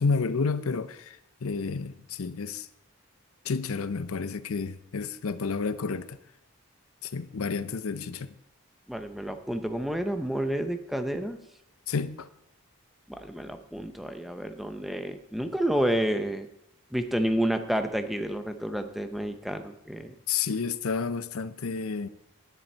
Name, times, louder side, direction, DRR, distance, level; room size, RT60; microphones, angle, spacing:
voice 1, 0.0-2.7 3.4-6.2 7.0-8.3 11.9-12.3 20.3-22.1, left 4 dB, 70° left, 0.6 m, -30 dB
voice 2, 8.9-11.4 13.1-16.5 16.9-20.1, right 1 dB, ahead, 0.6 m, -30 dB
10.5 x 10.0 x 4.4 m
head